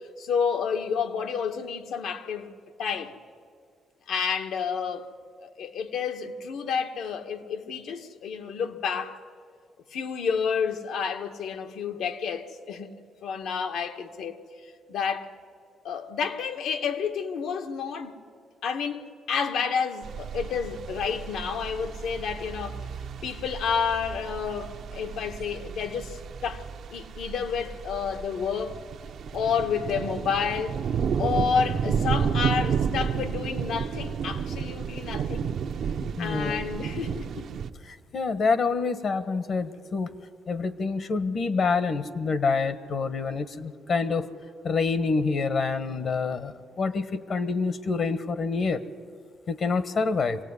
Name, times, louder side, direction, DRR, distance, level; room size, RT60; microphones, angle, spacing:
voice 1, 0.2-2.5 2.8-3.1 4.1-5.1 5.4-9.2 9.9-12.9 13.2-14.4 14.9-15.3 15.8-18.2 18.6-19.0 19.3-22.8 23.2-26.6 26.9-28.8 29.3-30.8 31.2-35.6 36.2-37.5, left 6 dB, 75° left, 1.7 m, -30 dB
sound 1, 20.0-37.7, right 7 dB, 65° right, 1.0 m, -32 dB
voice 2, 36.2-36.6 37.9-40.1 40.5-44.3 44.6-48.8 49.5-50.4, left 4 dB, 55° left, 1.3 m, -27 dB
25.0 x 17.0 x 9.8 m
cardioid pair, 90°, 0 cm